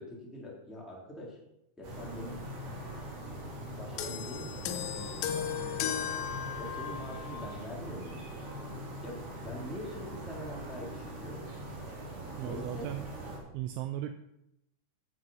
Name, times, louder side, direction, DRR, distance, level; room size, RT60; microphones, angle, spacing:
voice 1, 0.0-1.4 1.8-2.4 3.8-6.0 6.6-8.2 9.0-11.5 12.4-12.9, equal, ahead, -3 dB, 2.4 m, -44 dB
sound 1, 1.8-13.4, right 1 dB, 65° right, 6.1 m, -42 dB
sound 2, 4.0-7.6 8.5-8.6, left 9 dB, 85° left, 3.5 m, -36 dB
voice 2, 12.4-13.0 13.5-14.1, right 12 dB, 80° right, 8 dB, 2.9 m, -36 dB
15.0 x 7.8 x 5.6 m, 0.84 s
omnidirectional pair, 5.6 m